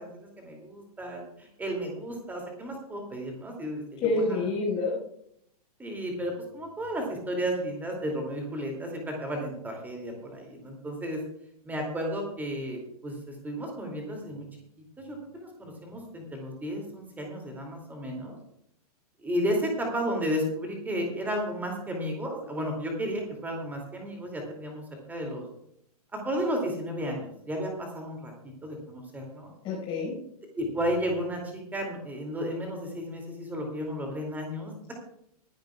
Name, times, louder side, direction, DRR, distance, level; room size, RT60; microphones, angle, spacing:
voice 1, 0.0-4.5 5.8-11.2 11.6-14.5 15.0-18.3 19.2-25.4 26.1-29.5 30.6-34.9, equal, 10° right, 1 dB, 2.6 m, -33 dB
voice 2, 4.0-5.0 29.6-30.1, left 3 dB, 25° left, -6 dB, 5.3 m, -27 dB
24.0 x 10.5 x 2.4 m, 0.72 s
figure-of-eight pair, 110°, 20 cm